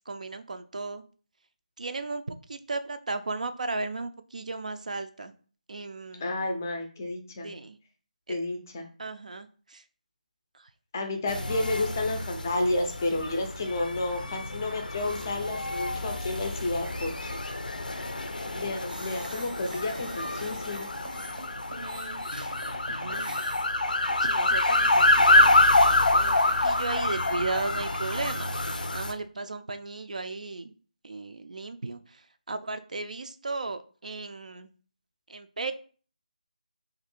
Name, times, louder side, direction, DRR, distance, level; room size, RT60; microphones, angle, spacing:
voice 1, 0.1-1.0 1.8-5.3 5.7-6.3 7.4-7.8 8.3-8.4 9.0-9.8 10.5-10.7 21.7-22.3 22.9-23.4 24.2-25.8 26.1-28.5 28.9-30.7 31.0-34.7 35.3-35.7, right 3 dB, 60° right, 9 dB, 0.3 m, -35 dB
voice 2, 6.2-7.5 8.3-8.8 10.9-17.4 18.5-20.9, left 2 dB, 20° left, 4 dB, 0.4 m, -31 dB
sound 1, 11.3-29.1, left 2 dB, 90° left, 0.5 m, -26 dB
sound 2, 18.9-28.4, right 2 dB, 85° right, 0.7 m, -45 dB
2.7 x 2.5 x 4.2 m, 0.41 s
figure-of-eight pair, 170°, 5 cm